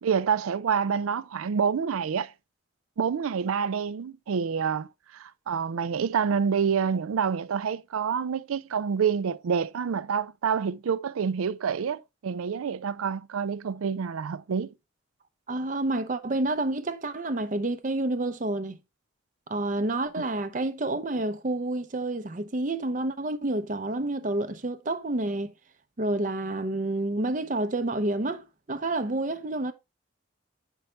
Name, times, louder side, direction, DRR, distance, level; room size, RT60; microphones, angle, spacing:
voice 1, 0.0-2.3 3.0-4.9 5.1-14.7 20.2-20.3, right 6 dB, 85° right, 0.4 m, -27 dB
voice 2, 15.5-18.8 19.5-25.5 26.0-29.7, right 2 dB, 40° right, 0.6 m, -29 dB
7.8 x 5.4 x 3.2 m
head